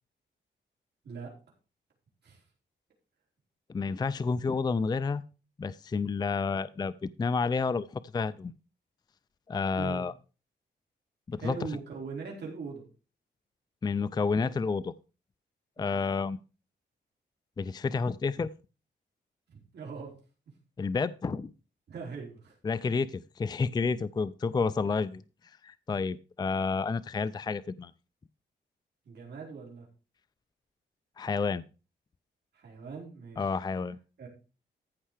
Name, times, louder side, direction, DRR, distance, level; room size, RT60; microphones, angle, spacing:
voice 1, 3.7-5.2 5.6-6.9 7.2-8.5 9.5-10.1 11.3-11.5 13.8-14.9 15.8-16.4 17.6-18.5 20.8-21.5 22.6-25.2 25.6-27.9 31.2-31.6 33.4-34.0, left 4 dB, 20° left, 15 dB, 0.4 m, -30 dB
voice 2, 11.4-12.8 15.8-16.0 19.5-20.1 21.9-22.5 29.1-29.9 32.5-33.6 34.2-34.3, right 5 dB, 65° right, -2 dB, 4.3 m, -41 dB
14.5 x 5.6 x 4.9 m, 0.34 s
cardioid pair, 110°, 19 cm